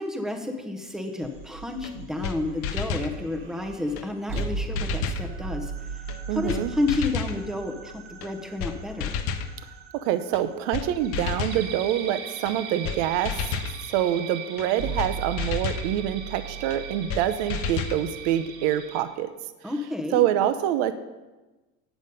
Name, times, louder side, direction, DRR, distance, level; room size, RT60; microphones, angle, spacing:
voice 1, 0.0-5.7 6.3-9.2 19.6-20.2, left 2 dB, ahead, 4 dB, 0.8 m, -30 dB
sound 1, 0.9-2.5 2.9-3.0 3.4-3.5 4.9-19.0, right 7 dB, 85° right, 2.0 m, -42 dB
sound 2, 1.2-8.5 14.8-18.9, right 5 dB, 45° right, 1.5 m, -37 dB
sound 3, 1.8-1.9 2.2-2.4 2.6-3.1 4.0-4.1 4.4-4.5 4.8-5.3 6.1-6.2 6.5-6.6 6.9-7.4 8.2-8.3 8.6-8.7 9.0-9.5 10.3-10.4 10.7-10.9 11.1-11.6 12.5-12.6 12.8-13.0 13.3-13.7 14.6-14.7 15.0-15.1 15.4-15.9 16.7-16.8 17.1-17.2 17.5-18.0, left 7 dB, 50° left, 0.8 m, -30 dB
voice 2, 6.3-6.7 9.9-13.6 13.9-19.3 20.1-20.9, right 11 dB, 65° right, 12 dB, 0.7 m, -26 dB
9.3 x 7.1 x 5.3 m, 1.1 s
cardioid pair, 155°, 29 cm